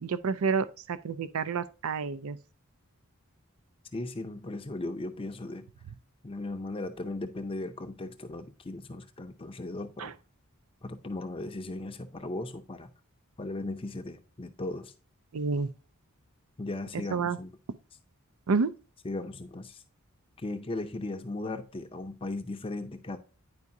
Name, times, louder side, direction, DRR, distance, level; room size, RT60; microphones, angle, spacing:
voice 1, 0.0-2.4 10.0-10.1 15.3-15.7 17.1-17.4 18.5-18.7, right 5 dB, 75° right, 0.5 m, -29 dB
voice 2, 3.9-5.7 6.2-10.1 10.8-12.9 13.4-14.9 16.6-17.5 19.0-19.8 20.4-23.2, left 2 dB, 25° left, 0.5 m, -37 dB
9.5 x 4.8 x 2.6 m
head